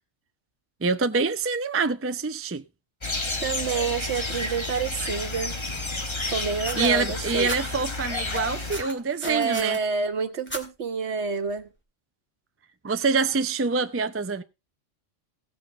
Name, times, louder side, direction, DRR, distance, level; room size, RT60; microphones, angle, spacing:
voice 1, 0.8-2.6 6.8-9.8 12.8-14.4, right 4 dB, 20° right, 0.4 m, -25 dB
sound 1, 3.0-8.8, left 2 dB, 25° left, 1.1 m, -31 dB
voice 2, 3.4-5.5 6.3-7.5 9.2-11.7, right 5 dB, 65° right, 1.4 m, -28 dB
sound 2, 6.6-7.6 8.2-9.8 10.5-10.6 11.6-11.7, equal, 10° left, 2.1 m, -36 dB
17.0 x 7.6 x 3.6 m
omnidirectional pair, 1.2 m